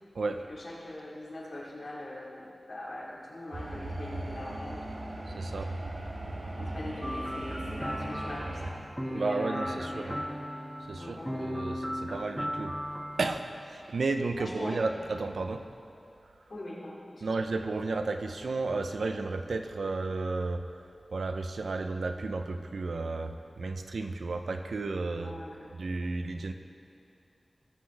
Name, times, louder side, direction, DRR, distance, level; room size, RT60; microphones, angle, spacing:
voice 1, 0.5-5.8 6.6-8.7 9.0-10.2 11.0-11.6 14.4-14.8 16.5-17.3 25.2-25.7, left 1 dB, 65° left, -5 dB, 2.7 m, -42 dB
sound 1, 3.5-8.7, right 1 dB, 65° right, 1.3 m, -38 dB
voice 2, 5.3-5.7 9.0-10.2 10.9-12.8 13.2-15.7 17.2-20.6 21.1-25.3 25.7-26.5, right 3 dB, 90° right, 7 dB, 0.6 m, -33 dB
sound 2, 7.0-13.4, equal, 5° right, 0.7 m, -37 dB
18.5 x 7.8 x 3.4 m, 2.7 s
wide cardioid pair, 80°, 0 cm